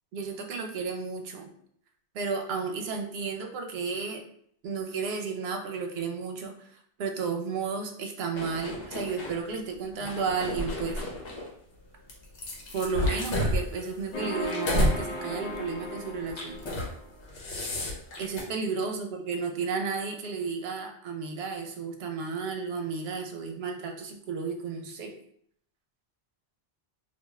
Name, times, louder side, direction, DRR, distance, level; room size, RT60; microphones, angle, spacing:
voice 1, 0.1-1.5 2.1-4.2 4.6-6.7 7.0-11.0 12.7-16.6 18.2-25.1, right 5 dB, 70° right, 4 dB, 0.8 m, -33 dB
sound 1, 8.4-9.4 9.9-11.5 12.1-15.0 15.4-15.7 16.3-16.9 17.2-18.4, left 1 dB, 85° left, 1.0 m, -30 dB
sound 2, 14.1-17.1, left 1 dB, 50° left, 0.6 m, -36 dB
2.4 x 2.3 x 3.0 m, 0.66 s
omnidirectional pair, 1.1 m